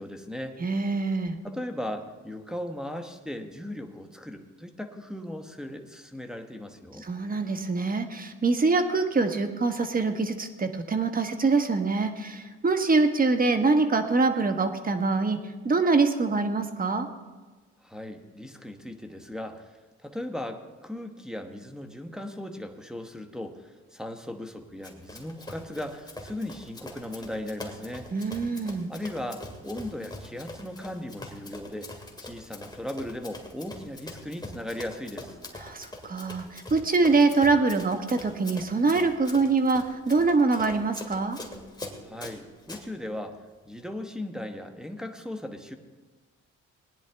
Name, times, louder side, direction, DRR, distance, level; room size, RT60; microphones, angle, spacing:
voice 1, 0.0-0.5 1.4-7.0 17.8-28.1 28.9-31.9 32.2-35.4 42.0-43.4 43.6-45.8, left 1 dB, ahead, 3 dB, 1.1 m, -37 dB
voice 2, 0.6-1.4 7.0-15.4 15.6-17.1 28.1-28.9 35.6-41.4, right 3 dB, 30° right, 7 dB, 1.2 m, -24 dB
Run, 24.8-42.8, left 2 dB, 15° left, 2.2 m, -43 dB
19.0 x 10.0 x 3.4 m, 1.3 s
cardioid pair, 90°, 30 cm